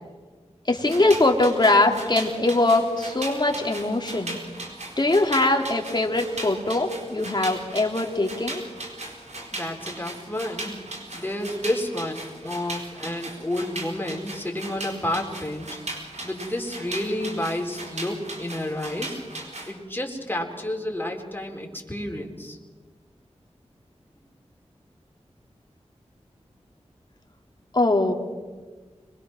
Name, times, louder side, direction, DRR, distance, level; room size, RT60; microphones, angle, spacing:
voice 1, 0.7-4.4 5.0-8.6 27.7-28.1, left 2 dB, 40° left, 2 dB, 2.6 m, -22 dB
sound 1, 0.7-19.7, right 2 dB, 75° right, 4.4 m, -38 dB
voice 2, 9.5-10.8 11.1-15.8 16.2-19.2 19.7-22.6, left 1 dB, 15° left, 1 dB, 4.3 m, -30 dB
26.0 x 22.0 x 6.2 m, 1.4 s
wide cardioid pair, 55°, 12 cm